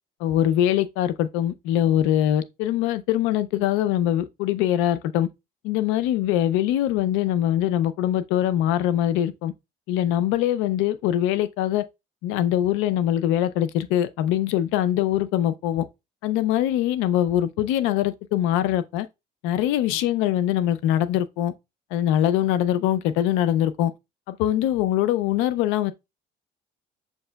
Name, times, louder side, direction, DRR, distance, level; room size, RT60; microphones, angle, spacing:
voice 1, 0.2-5.3 5.6-9.5 9.9-11.8 12.2-15.8 16.2-19.1 19.4-21.5 21.9-23.9 24.3-25.9, left 12 dB, 85° left, 0.4 m, -23 dB
6.6 x 2.8 x 2.2 m
supercardioid pair, 75°, 20 cm